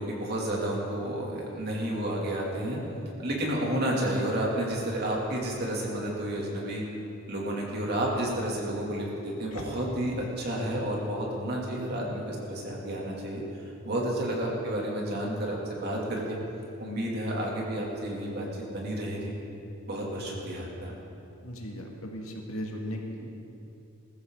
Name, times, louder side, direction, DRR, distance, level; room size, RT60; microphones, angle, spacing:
voice 1, 0.0-2.8 3.2-6.8 7.3-13.4 13.8-16.4 16.8-18.5 18.7-19.3 19.9-20.9, right 1 dB, 50° right, -3 dB, 3.0 m, -31 dB
voice 2, 21.4-23.3, equal, 75° left, 0 dB, 2.2 m, -37 dB
21.0 x 14.0 x 4.1 m, 2.8 s
head